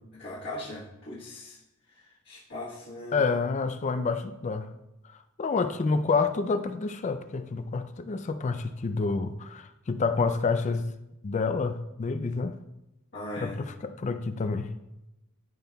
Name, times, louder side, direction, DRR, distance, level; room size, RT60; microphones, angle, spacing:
voice 1, 0.1-1.6 1.9-3.2 13.1-13.7, left 1 dB, 50° left, -8 dB, 1.3 m, -39 dB
voice 2, 3.1-4.7 5.1-10.8 11.2-12.6 13.4-14.7, left 4 dB, 35° left, 10 dB, 0.3 m, -28 dB
13.0 x 5.4 x 2.3 m, 0.92 s
head